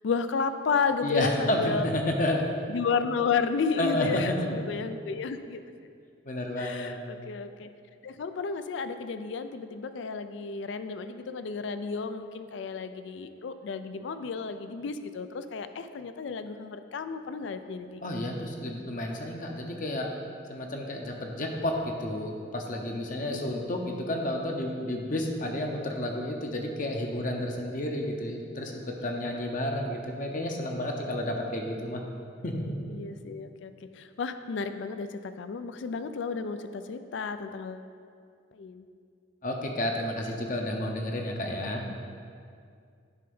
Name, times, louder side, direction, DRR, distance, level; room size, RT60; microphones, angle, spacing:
voice 1, 0.0-1.9 2.7-5.6 6.6-7.7 8.0-18.0 23.2-23.4 32.9-37.9 38.5-38.8, left 5 dB, 70° left, 10 dB, 0.4 m, -32 dB
voice 2, 1.0-2.4 3.8-4.2 6.3-7.0 18.0-20.1 20.5-32.0 32.4-32.8 39.4-41.8, left 1 dB, 45° left, 1 dB, 0.7 m, -31 dB
9.8 x 3.4 x 5.3 m, 2.3 s
head